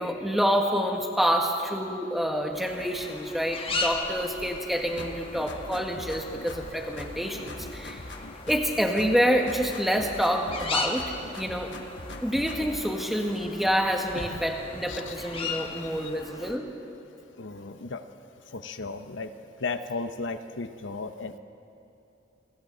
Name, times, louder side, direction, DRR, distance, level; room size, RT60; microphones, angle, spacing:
voice 1, 0.0-8.0 8.5-11.7 12.2-16.6, equal, ahead, 1 dB, 1.6 m, -27 dB
sound 1, 2.5-16.6, left 3 dB, 30° left, 1.4 m, -37 dB
sound 2, 5.0-6.7 7.0-8.7 9.0-10.7 11.0-12.8, left 2 dB, 70° left, 1.4 m, -42 dB
voice 2, 17.4-18.0 18.5-19.3 19.6-21.4, left 3 dB, 90° left, 9 dB, 0.9 m, -35 dB
28.5 x 22.5 x 4.0 m, 2.8 s
head